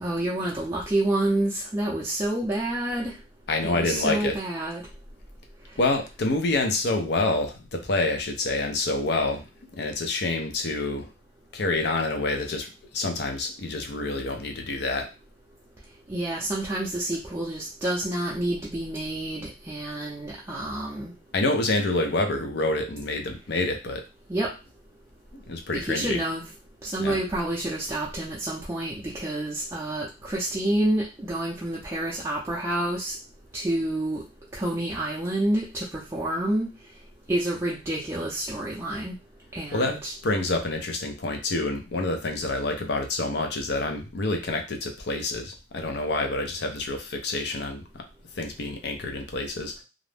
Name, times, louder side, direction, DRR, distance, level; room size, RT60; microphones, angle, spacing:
voice 1, 0.0-3.1 3.6-4.8 16.1-21.1 24.3-24.5 25.7-26.4 26.8-33.2 33.5-34.2 34.5-36.7 37.3-39.2 39.5-40.1, right 1 dB, 15° right, -5 dB, 0.4 m, -28 dB
voice 2, 3.5-4.4 5.8-11.1 11.5-15.1 21.3-24.0 25.3-26.2 27.0-27.2 39.7-48.0 48.4-49.8, left 2 dB, 65° left, 4 dB, 0.6 m, -27 dB
2.5 x 2.0 x 3.2 m, 0.28 s
head